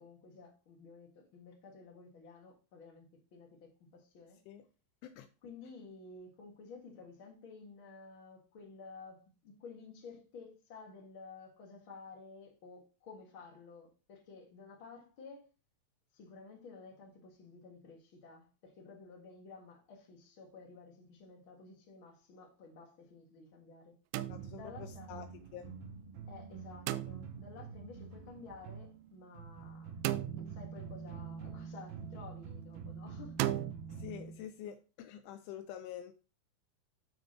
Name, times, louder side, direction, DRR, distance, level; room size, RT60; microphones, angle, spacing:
voice 1, 0.0-4.4 5.4-15.5 16.1-24.0 24.5-25.1 26.3-30.0 30.3-33.4, left 4 dB, 60° left, 1.3 m, -53 dB
sound 1, 24.1-24.9 26.9-27.6 30.1-30.9 33.4-33.7, right 14 dB, 85° right, 3.1 m, -36 dB
voice 2, 24.3-25.7 33.9-36.1, left 10 dB, 80° left, 2.9 m, -47 dB
sound 2, 24.3-34.4, right 6 dB, 70° right, 2.4 m, -47 dB
9.3 x 4.8 x 3.9 m
omnidirectional pair, 5.6 m